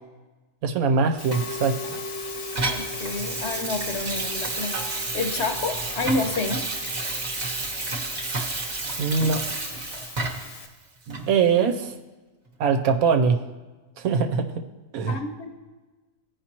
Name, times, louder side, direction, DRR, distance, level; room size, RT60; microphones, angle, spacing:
voice 1, 0.6-1.8 9.0-9.6 11.1-11.9 12.6-13.4 14.0-14.6 14.9-15.2, right 5 dB, 85° right, 5 dB, 1.2 m, -22 dB
Musical instrument, 1.2-10.7, left 3 dB, 70° left, 1.3 m, -37 dB
Water tap faucet / Sink (filling or washing), 1.3-10.6 11.1-11.2, right 3 dB, 35° right, 0.9 m, -31 dB
voice 2, 2.7-6.6 15.1-15.6, left 3 dB, 55° left, 4 dB, 1.0 m, -29 dB
15.5 x 5.3 x 2.9 m, 1.2 s
omnidirectional pair, 1.5 m